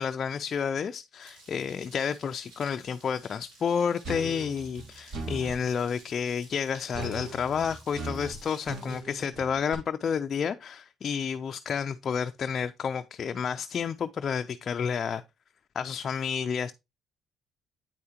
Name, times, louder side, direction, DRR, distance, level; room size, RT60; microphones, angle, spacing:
voice 1, 0.0-15.2 15.8-16.7, left 7 dB, 45° left, 0.3 m, -30 dB
sound 1, 1.2-9.0, right 2 dB, 85° right, 3.6 m, -55 dB
sound 2, 4.0-5.6 6.9-9.7, right 2 dB, 70° right, 2.4 m, -38 dB
8.6 x 4.8 x 2.8 m
cardioid pair, 105°, 0 cm